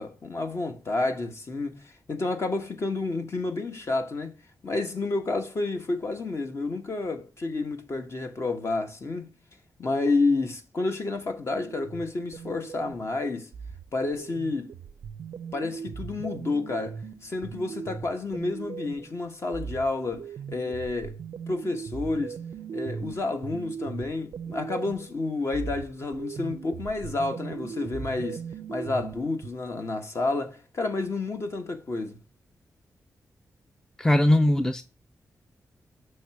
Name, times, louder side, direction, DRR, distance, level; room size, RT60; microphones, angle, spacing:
voice 1, 0.0-4.3 4.6-9.3 9.8-13.5 13.9-14.7 15.5-21.2 21.5-22.4 22.7-32.2, left 3 dB, 45° left, 1.2 m, -30 dB
sound 1, 11.5-13.1 13.5-19.1 19.5-25.1 25.5-29.5, right 6 dB, 80° right, 0.4 m, -39 dB
voice 2, 34.0-34.8, left 1 dB, 10° left, 0.4 m, -20 dB
6.4 x 3.3 x 5.9 m
cardioid pair, 90°, 6 cm